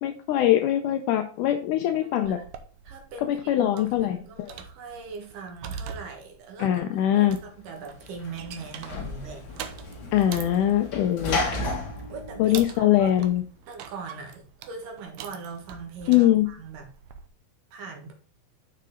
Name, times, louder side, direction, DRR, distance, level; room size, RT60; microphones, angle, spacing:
voice 1, 0.0-2.4 3.2-4.2 6.6-7.4 10.1-11.4 12.4-13.4 16.1-16.5, left 12 dB, 80° left, 7 dB, 1.8 m, -22 dB
voice 2, 2.0-2.5 2.8-6.8 7.1-9.4 12.1-13.1 13.7-16.9 17.7-18.2, right 5 dB, 70° right, 3 dB, 2.9 m, -40 dB
sound 1, 2.2-17.3, right 7 dB, 90° right, 1.6 m, -44 dB
Sliding door / Slam, 7.6-13.4, left 2 dB, 45° left, 1.4 m, -34 dB
6.7 x 6.4 x 3.6 m, 0.41 s
omnidirectional pair, 4.1 m